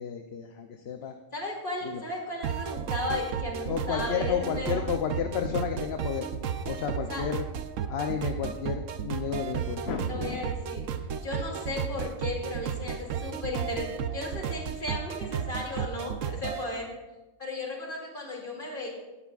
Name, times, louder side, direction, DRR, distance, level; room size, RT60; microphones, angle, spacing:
voice 1, 0.0-1.1 1.8-2.0 3.7-6.3 6.7-7.5 7.9-10.4, left 7 dB, 60° left, 5 dB, 0.9 m, -32 dB
voice 2, 1.3-4.8 7.1-7.2 10.1-10.8 11.2-16.9 17.4-18.9, left 2 dB, 40° left, -1 dB, 2.7 m, -35 dB
sound 1, 2.4-16.6, right 8 dB, 85° right, 1.0 m, -33 dB
17.5 x 11.0 x 2.4 m, 1.1 s
omnidirectional pair, 1.3 m